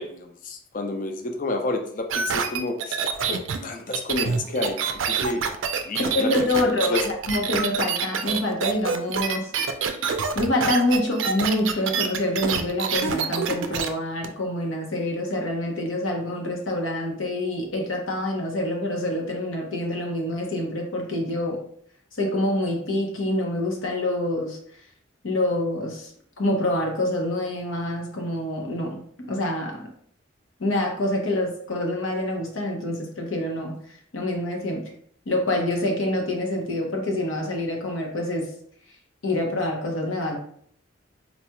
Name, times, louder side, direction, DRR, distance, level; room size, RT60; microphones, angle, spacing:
voice 1, 0.0-3.0 3.3-3.4 3.6-5.4 5.8-6.3 6.7-7.0, left 2 dB, 40° left, 4 dB, 0.4 m, -30 dB
sound 1, 2.1-13.9 14.2-14.3, right 6 dB, 75° right, 0.4 m, -26 dB
voice 2, 6.0-9.5 10.3-21.6 22.1-24.6 25.2-26.1 26.4-29.0 29.3-29.9 30.6-33.8 34.1-34.9 35.3-38.5 39.2-40.4, left 1 dB, 90° left, 1 dB, 0.9 m, -26 dB
4.0 x 2.3 x 2.9 m, 0.63 s
head